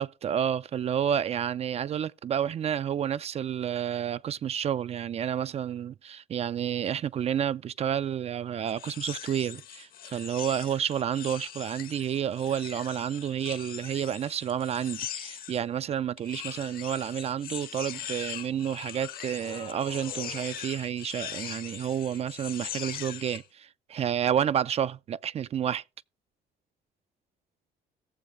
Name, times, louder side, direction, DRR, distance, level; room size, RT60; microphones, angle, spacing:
voice 1, 0.0-25.8, right 9 dB, 40° right, 0.4 m, -30 dB
sound 1, 8.7-15.6 16.2-23.4, left 10 dB, 60° left, 1.1 m, -41 dB
sound 2, 19.4-20.8, left 8 dB, 45° left, 0.8 m, -45 dB
17.0 x 7.1 x 2.5 m
cardioid pair, 110°, 17 cm